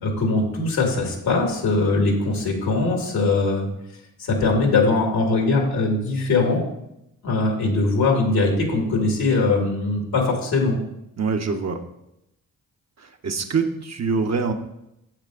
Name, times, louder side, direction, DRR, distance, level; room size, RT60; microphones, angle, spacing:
voice 1, 0.0-3.7 4.2-6.6 7.2-10.8, left 3 dB, 80° left, 1 dB, 2.0 m, -21 dB
voice 2, 11.2-11.9 13.0-14.5, right 5 dB, 45° right, 4 dB, 1.0 m, -25 dB
8.9 x 7.4 x 2.5 m, 0.83 s
supercardioid pair, 45°, 36 cm